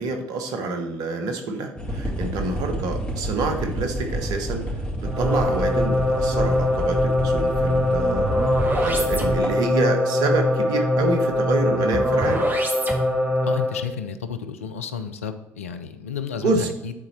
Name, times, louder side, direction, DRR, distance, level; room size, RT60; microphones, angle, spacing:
voice 1, 0.0-4.6 5.0-12.5 16.4-16.7, right 3 dB, 65° right, 5 dB, 1.1 m, -27 dB
sound 1, 1.8-9.7 10.9-11.0 11.3-11.4, right 1 dB, 15° left, 2.7 m, -29 dB
sound 2, 5.0-13.8, left 1 dB, 25° right, 1.4 m, -22 dB
voice 2, 13.4-16.9, left 7 dB, 90° left, 9 dB, 0.5 m, -32 dB
9.7 x 4.2 x 4.2 m, 0.99 s
hypercardioid pair, 50°, 7 cm